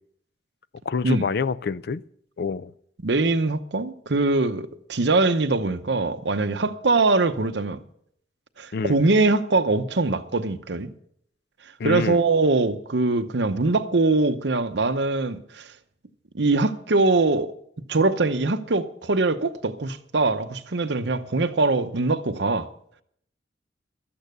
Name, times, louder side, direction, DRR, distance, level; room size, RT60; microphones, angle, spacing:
voice 1, 0.9-2.0 2.4-2.7 8.7-9.0 11.8-12.2, left 5 dB, 60° left, 0.4 m, -27 dB
voice 2, 3.0-7.8 8.6-10.9 11.8-15.6 16.3-17.5 17.9-22.7, right 3 dB, 75° right, 0.9 m, -22 dB
13.0 x 8.7 x 6.7 m
head